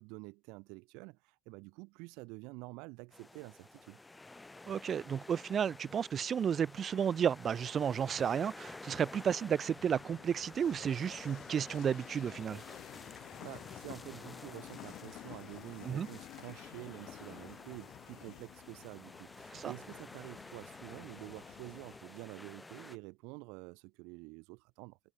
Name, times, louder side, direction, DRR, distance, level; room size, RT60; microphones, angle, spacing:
voice 1, 0.0-4.0 13.2-25.0, right 28 dB, 85° right, 0.7 m, -49 dB
sound 1, 3.1-23.0, left 2 dB, 15° left, 0.7 m, -52 dB
voice 2, 4.7-12.6 15.9-16.1 19.5-19.7, right 8 dB, 45° right, 0.4 m, -32 dB
sound 2, 9.7-22.0, left 16 dB, 70° left, 0.6 m, -52 dB
supercardioid pair, 90°, 0 cm